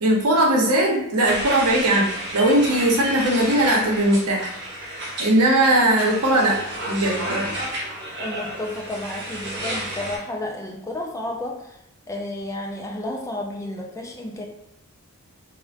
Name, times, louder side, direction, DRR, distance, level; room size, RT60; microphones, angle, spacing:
voice 1, 0.0-2.1 2.3-4.5 5.2-6.6 6.9-7.5, right 1 dB, 90° right, -1 dB, 0.7 m, -19 dB
sound 1, 1.3-10.2, right 1 dB, 50° right, 0.8 m, -31 dB
voice 2, 8.2-11.8 12.1-14.5, left 1 dB, 15° left, 1 dB, 0.3 m, -31 dB
3.2 x 2.1 x 2.4 m, 0.82 s
head